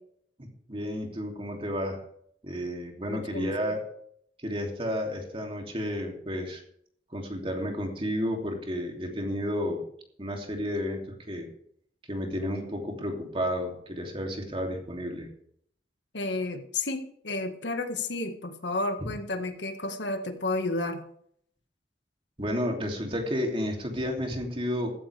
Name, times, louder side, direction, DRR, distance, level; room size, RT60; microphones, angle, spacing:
voice 1, 0.4-2.0 2.4-3.8 4.4-6.6 7.1-9.8 10.2-11.5 12.1-15.3 19.0-19.1 22.4-24.9, equal, 30° right, 1 dB, 3.0 m, -31 dB
voice 2, 3.1-3.5 16.1-21.0, left 2 dB, 85° left, 6 dB, 1.7 m, -31 dB
15.5 x 14.0 x 3.5 m, 0.66 s
head